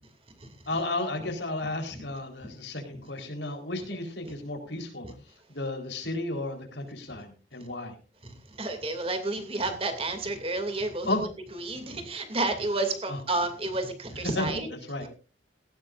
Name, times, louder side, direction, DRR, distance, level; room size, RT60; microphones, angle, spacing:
voice 1, 0.7-5.1 5.5-7.9 11.1-11.2 13.1-13.2 14.3-14.5 14.9-15.0, left 2 dB, 85° left, 4 dB, 4.1 m, -33 dB
voice 2, 1.6-2.0 2.4-2.5 2.9-3.0 5.0-5.1 7.1-7.2 7.6-7.7 8.2-11.2 11.5-14.7 15.0-15.1, right 2 dB, 35° right, 6 dB, 2.6 m, -31 dB
18.0 x 15.5 x 2.6 m, 0.36 s
head